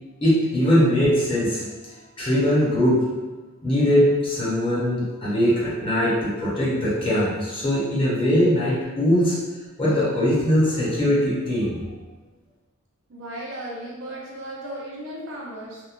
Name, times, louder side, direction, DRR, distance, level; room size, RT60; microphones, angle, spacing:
voice 1, 0.2-1.6 2.2-3.0 3.6-9.4 9.8-11.8, equal, 25° left, -8 dB, 0.7 m, -21 dB
voice 2, 13.1-15.8, right 1 dB, 60° right, -4 dB, 0.6 m, -35 dB
2.8 x 2.1 x 2.5 m, 1.2 s
head